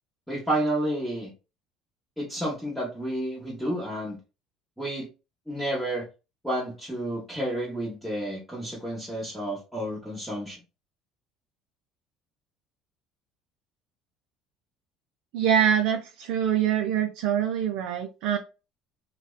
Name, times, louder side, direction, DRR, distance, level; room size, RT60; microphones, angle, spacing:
voice 1, 0.3-1.3 2.2-4.2 4.8-5.1 5.5-6.1 6.4-10.6, right 1 dB, ahead, -5 dB, 0.9 m, -30 dB
voice 2, 15.3-18.4, right 9 dB, 75° right, 4 dB, 0.3 m, -24 dB
2.7 x 2.2 x 2.2 m, 0.30 s
supercardioid pair, 100°, 0 cm